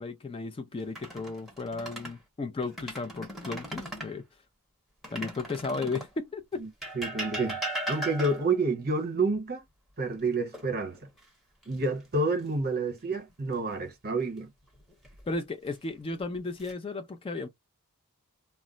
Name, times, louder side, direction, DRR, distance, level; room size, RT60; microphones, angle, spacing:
voice 1, 0.0-4.2 5.1-6.6 15.3-17.5, left 3 dB, 25° left, 0.3 m, -34 dB
sound 1, 0.8-2.2 2.6-4.2 5.0-6.2 6.8-8.6 10.5-11.2 11.6-11.8 14.8-15.4 16.1-16.7, right 1 dB, ahead, 0.9 m, -38 dB
voice 2, 6.9-7.6 7.9-9.6 10.0-11.1 11.7-14.5, right 3 dB, 45° right, 0.9 m, -29 dB
2.2 x 2.0 x 3.8 m
head